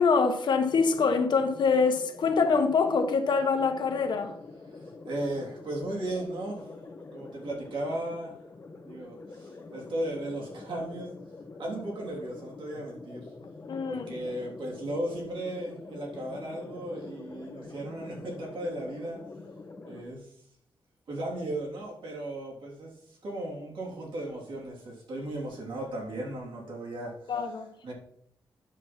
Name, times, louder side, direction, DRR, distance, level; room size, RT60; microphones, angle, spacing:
voice 1, 0.0-4.3 13.7-14.1 27.3-27.9, left 5 dB, 65° left, 1.3 m, -25 dB
sound 1, 0.6-20.0, left 3 dB, 30° left, 1.1 m, -46 dB
voice 2, 4.7-6.8 7.1-8.3 8.8-11.1 11.6-13.3 13.8-19.2 19.9-20.3 21.1-27.3 27.8-27.9, right 1 dB, 75° right, 3.4 m, -36 dB
9.8 x 7.1 x 4.5 m
wide cardioid pair, 180°, 8 cm